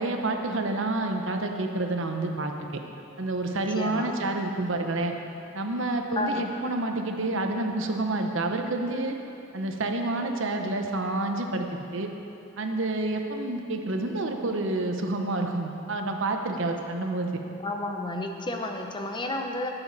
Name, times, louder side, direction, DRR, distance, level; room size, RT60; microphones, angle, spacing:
voice 1, 0.0-2.7 3.2-5.1 5.5-9.2 9.5-12.1 12.6-17.3, right 2 dB, 60° right, 4 dB, 0.9 m, -28 dB
voice 2, 3.5-4.1 6.2-6.4 17.6-19.7, left 2 dB, 20° left, 3 dB, 0.9 m, -31 dB
18.5 x 7.1 x 4.1 m, 2.8 s
head